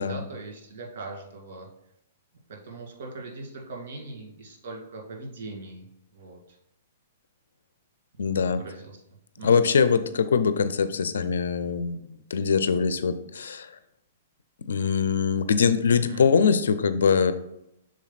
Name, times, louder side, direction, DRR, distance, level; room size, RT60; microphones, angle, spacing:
voice 1, 0.0-1.7 2.5-6.4 8.5-8.9 9.4-9.7 15.9-16.3, right 3 dB, 60° right, 0 dB, 2.3 m, -40 dB
voice 2, 8.2-8.6 9.4-13.8 14.7-17.3, left 6 dB, 85° left, 12 dB, 0.5 m, -23 dB
6.3 x 4.1 x 4.1 m, 0.80 s
hypercardioid pair, 150°, 0 cm